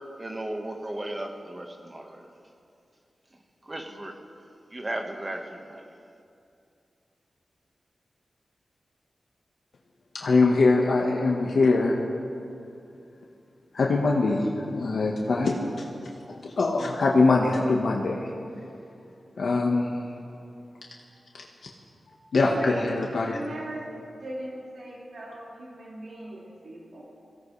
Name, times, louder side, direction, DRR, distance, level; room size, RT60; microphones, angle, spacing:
voice 1, 0.2-2.3 3.6-4.2 4.7-5.8, right 1 dB, 25° right, 3 dB, 1.4 m, -35 dB
voice 2, 10.1-12.0 13.7-18.3 19.4-20.0 21.3-21.4 22.3-23.4, left 3 dB, 80° left, -2 dB, 1.3 m, -23 dB
voice 3, 22.6-22.9 23.2-23.8 24.2-27.0, right 1 dB, 85° right, -6 dB, 2.7 m, -38 dB
23.0 x 16.5 x 3.3 m, 2.6 s
wide cardioid pair, 120°, 0 cm